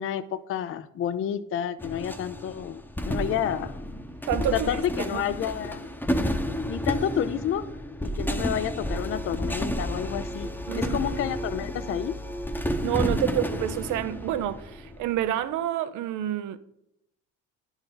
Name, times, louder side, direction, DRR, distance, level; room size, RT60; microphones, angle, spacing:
voice 1, 0.0-3.8 4.5-5.9 6.7-7.7 8.0-12.1, left 9 dB, 40° left, 0.5 m, -30 dB
sound 1, 1.8-15.3, equal, 5° left, 0.9 m, -31 dB
voice 2, 4.3-5.2 10.7-11.0 12.8-16.6, right 12 dB, 60° right, 0.6 m, -28 dB
10.5 x 4.4 x 3.8 m
supercardioid pair, 70°, 35 cm